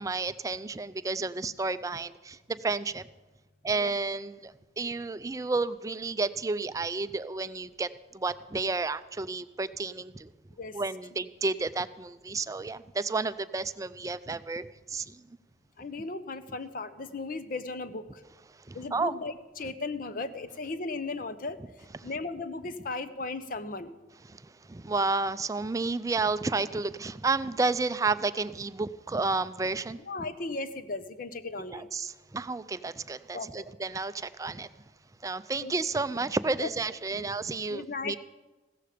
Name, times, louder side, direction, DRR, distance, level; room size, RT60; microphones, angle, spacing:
voice 1, 0.0-3.0 3.6-10.3 10.7-15.2 18.7-19.1 22.0-22.1 24.2-30.0 31.7-34.7 35.2-38.2, right 3 dB, 20° right, 14 dB, 0.4 m, -31 dB
voice 2, 15.8-18.0 18.7-21.6 22.0-23.9 30.1-31.9 33.3-33.6 35.6-35.7 36.6-36.7 37.1-37.3 37.7-38.2, left 3 dB, 50° left, 12 dB, 0.7 m, -36 dB
15.5 x 13.5 x 5.1 m, 1.1 s
head